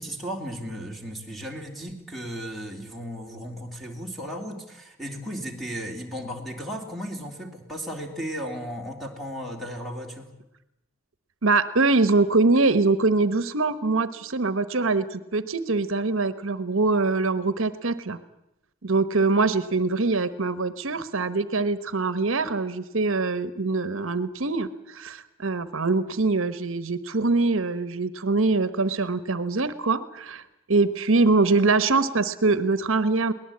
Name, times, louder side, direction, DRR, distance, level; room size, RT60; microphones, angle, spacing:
voice 1, 0.0-10.3, equal, ahead, 2 dB, 3.1 m, -35 dB
voice 2, 11.4-18.2 18.8-30.4 30.7-33.3, right 3 dB, 70° right, 13 dB, 1.0 m, -23 dB
23.0 x 18.5 x 8.6 m, 0.87 s
head